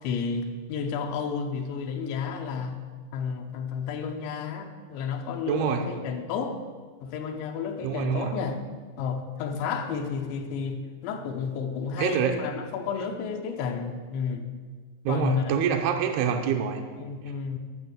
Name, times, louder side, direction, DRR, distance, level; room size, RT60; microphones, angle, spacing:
voice 1, 0.0-2.8 3.1-6.6 7.0-8.6 9.0-14.4 15.1-15.5 17.0-17.6, left 6 dB, 85° left, 4 dB, 3.1 m, -31 dB
voice 2, 5.4-5.8 7.8-8.3 12.0-12.4 15.1-16.9, right 8 dB, 80° right, 4 dB, 2.4 m, -26 dB
11.0 x 6.3 x 8.0 m, 1.5 s
omnidirectional pair, 5.1 m